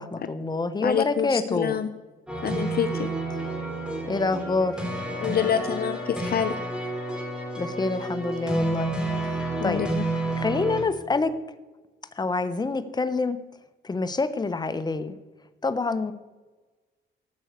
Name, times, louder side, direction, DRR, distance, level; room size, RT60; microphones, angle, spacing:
voice 1, 0.0-1.8 4.0-4.8 7.6-8.9 9.2-9.4 9.6-9.8 10.4-11.3 12.2-13.4 13.8-15.2 15.6-16.1, left 3 dB, 20° left, 11 dB, 1.0 m, -26 dB
voice 2, 0.8-1.9 2.4-3.1 5.2-6.6 9.6-9.9, left 8 dB, 50° left, 11 dB, 0.8 m, -26 dB
sound 1, 2.3-10.8, right 2 dB, 5° right, 4.4 m, -30 dB
14.0 x 6.3 x 8.2 m, 1.2 s
cardioid pair, 90°, 20 cm